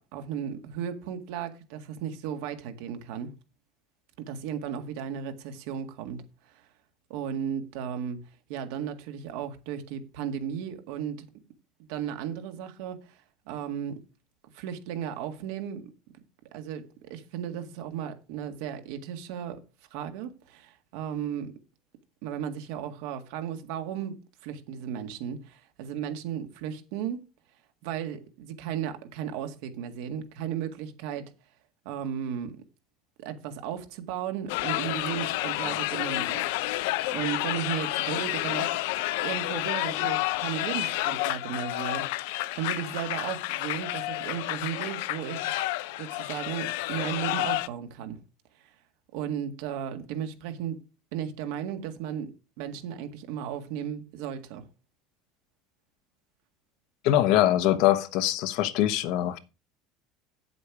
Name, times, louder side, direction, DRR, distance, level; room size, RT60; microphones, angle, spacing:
voice 1, 0.0-3.3 4.2-6.7 7.1-8.2 8.5-11.3 11.9-13.2 13.5-13.9 14.5-15.9 16.5-19.6 19.9-21.6 22.2-24.1 24.4-27.3 27.8-31.3 31.9-32.6 33.2-36.8 37.1-38.8 39.2-42.1 42.6-45.4 46.0-48.2 49.1-50.8 51.1-52.3 52.6-54.6, right 9 dB, 75° right, 1.8 m, -35 dB
sound 1, 34.5-47.7, left 18 dB, 85° left, 0.5 m, -30 dB
voice 2, 57.0-59.4, left 13 dB, 65° left, 1.0 m, -23 dB
8.4 x 7.9 x 4.7 m
supercardioid pair, 135°, 0 cm